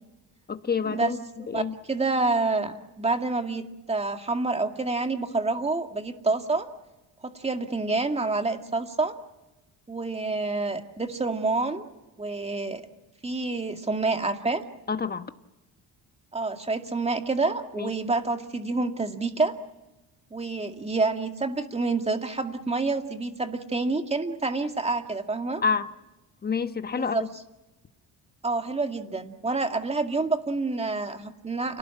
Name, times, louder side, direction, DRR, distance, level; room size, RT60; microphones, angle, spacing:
voice 1, 0.5-1.2 1.5-1.7 14.9-15.3 17.8-17.9 25.6-25.9 26.4-27.2, left 5 dB, 25° left, 1.2 m, -27 dB
voice 2, 1.4-6.7 7.2-9.1 9.9-11.8 12.2-12.8 13.2-14.6 16.3-19.5 20.3-25.6 26.9-27.2 28.4-31.8, right 3 dB, 15° right, 2.2 m, -28 dB
29.5 x 18.5 x 8.8 m
cardioid pair, 130°, 41 cm